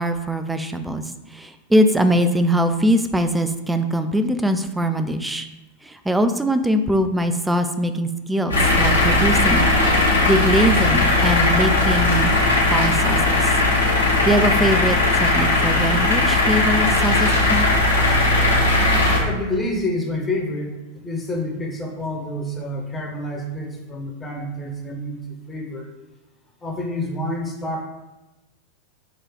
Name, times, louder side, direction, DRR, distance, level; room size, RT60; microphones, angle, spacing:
voice 1, 0.0-5.5 5.8-9.7 10.2-12.3 12.7-13.6 14.2-17.7, right 1 dB, 5° right, 8 dB, 0.3 m, -22 dB
sound 1, 8.5-19.2, left 2 dB, 75° left, 0.9 m, -18 dB
voice 2, 19.2-25.9 26.6-27.8, left 1 dB, 15° left, 0 dB, 0.8 m, -28 dB
3.9 x 2.3 x 4.6 m, 1.0 s
figure-of-eight pair, 90°, 0 cm